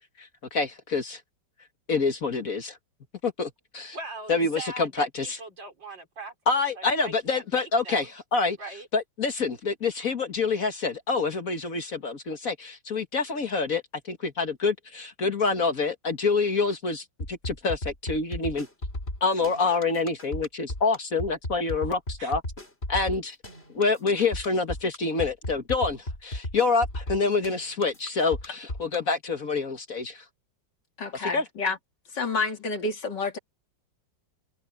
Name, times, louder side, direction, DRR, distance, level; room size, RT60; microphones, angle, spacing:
voice 1, 0.2-1.2 1.9-2.8 3.2-4.0 4.3-5.4 6.5-8.1 8.3-8.6 8.9-18.7 19.2-22.4 22.9-23.4 23.7-30.2 31.1-31.4, left 4 dB, 45° left, 1.9 m, -27 dB
voice 2, 3.9-6.3 6.8-8.1 8.6-8.9 22.2-22.3, right 2 dB, 70° right, 6.0 m, -40 dB
sound 1, 17.2-29.0, left 1 dB, 30° left, 5.4 m, -34 dB
voice 3, 31.0-31.8 32.1-33.4, left 3 dB, 65° left, 3.0 m, -29 dB
omnidirectional pair, 2.1 m